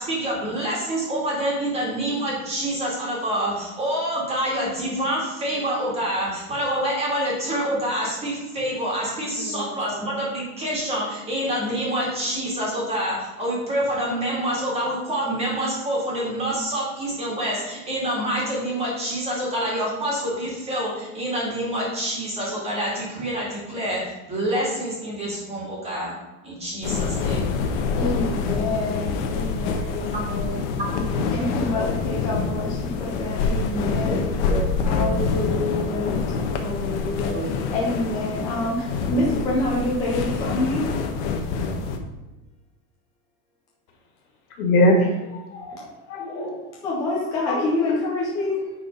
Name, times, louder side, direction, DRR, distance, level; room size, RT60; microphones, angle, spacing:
voice 1, 0.0-26.1 26.4-27.5 30.1-30.2 30.8-30.9 31.4-31.8 34.1-35.3 37.1-37.5, right 1 dB, 15° right, -4 dB, 2.3 m, -27 dB
voice 2, 9.4-10.2 27.9-34.3 34.8-36.2 36.5-37.3 37.7-40.9 46.8-48.7, left 2 dB, 10° left, -4 dB, 0.4 m, -27 dB
sound 1, 26.8-42.0, left 4 dB, 50° left, 1.2 m, -26 dB
voice 3, 44.6-46.6 47.5-47.7, left 1 dB, 75° left, 2 dB, 2.5 m, -22 dB
9.1 x 4.3 x 5.3 m, 1.1 s
supercardioid pair, 170°, 44 cm